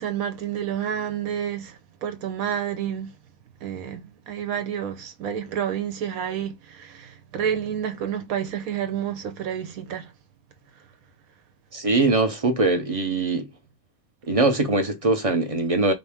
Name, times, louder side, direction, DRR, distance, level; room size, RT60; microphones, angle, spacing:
voice 1, 0.0-3.1 3.6-10.1 10.7-10.8, right 9 dB, 85° right, 1.2 m, -29 dB
voice 2, 11.7-13.5 14.3-15.9, right 3 dB, 40° right, 0.5 m, -22 dB
4.1 x 2.8 x 3.5 m
omnidirectional pair, 1.4 m